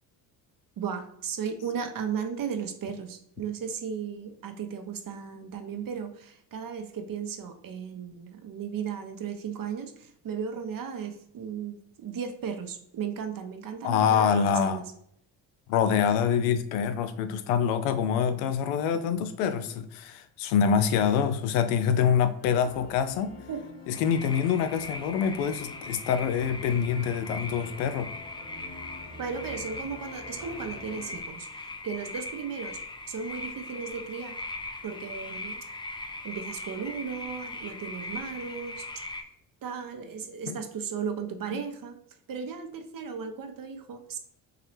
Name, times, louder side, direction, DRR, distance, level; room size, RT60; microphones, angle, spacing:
voice 1, 0.8-14.8 23.5-23.6 29.2-32.8 33.1-34.4 34.8-35.6 36.2-38.8 39.6-42.0 42.3-44.2, right 6 dB, 45° right, 6 dB, 0.8 m, -35 dB
voice 2, 13.8-14.8 15.7-23.3 23.9-28.1 40.5-40.6 41.5-41.6, left 7 dB, 80° left, 10 dB, 0.6 m, -25 dB
sound 1, 22.4-31.2, left 1 dB, 60° left, 1.4 m, -47 dB
sound 2, 23.9-39.2, left 2 dB, 10° left, 0.4 m, -40 dB
3.8 x 2.9 x 3.2 m, 0.71 s
hypercardioid pair, 60°, 46 cm